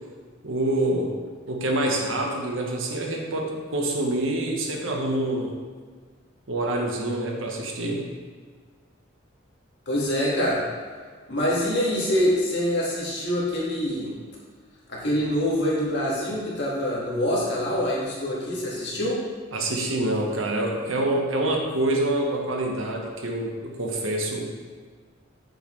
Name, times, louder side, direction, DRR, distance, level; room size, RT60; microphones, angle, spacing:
voice 1, 0.4-1.1 1.5-5.5 6.5-8.0 19.5-24.6, right 1 dB, 75° right, 0 dB, 1.1 m, -26 dB
voice 2, 9.8-10.6 11.3-14.2 14.9-19.2, equal, 55° left, -5 dB, 1.8 m, -25 dB
6.6 x 6.3 x 3.2 m, 1.5 s
head